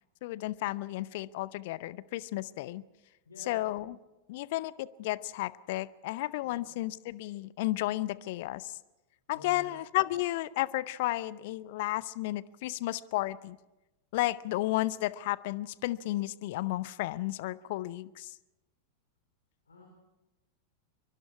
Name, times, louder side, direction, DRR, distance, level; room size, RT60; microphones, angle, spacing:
voice 1, 0.2-2.8 3.4-4.0 4.3-8.8 9.3-13.6 14.1-18.3, left 17 dB, 50° left, 20 dB, 0.6 m, -33 dB
voice 2, 3.3-3.6 6.4-6.6 9.3-9.7 19.7-19.9, left 1 dB, 75° left, 0 dB, 4.5 m, -51 dB
23.5 x 23.0 x 4.8 m, 1.0 s
figure-of-eight pair, 90°, 0 cm